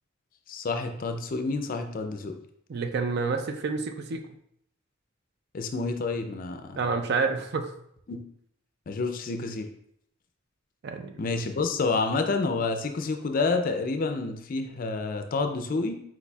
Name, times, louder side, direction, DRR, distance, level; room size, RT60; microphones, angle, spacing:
voice 1, 0.5-2.4 5.5-6.9 8.1-8.2 8.9-9.7 11.2-16.0, left 3 dB, 45° left, 6 dB, 0.4 m, -29 dB
voice 2, 2.7-4.3 6.8-7.7 10.8-11.2, right 4 dB, 50° right, 7 dB, 0.4 m, -29 dB
4.6 x 4.1 x 2.3 m, 0.70 s
head